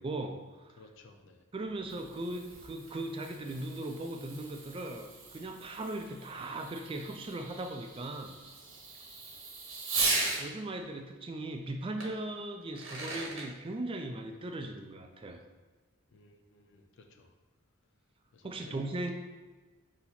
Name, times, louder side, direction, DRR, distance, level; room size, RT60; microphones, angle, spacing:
voice 1, 0.0-0.8 1.5-8.4 10.4-15.4 18.4-19.1, right 2 dB, 25° right, 4 dB, 0.3 m, -38 dB
voice 2, 0.8-1.4 16.1-17.3 18.3-19.1, left 3 dB, 60° left, 5 dB, 0.4 m, -57 dB
Fireworks, 1.7-10.4 12.0-12.1 12.6-13.5, right 3 dB, 70° right, 1.0 m, -38 dB
4.1 x 2.8 x 4.1 m, 1.3 s
head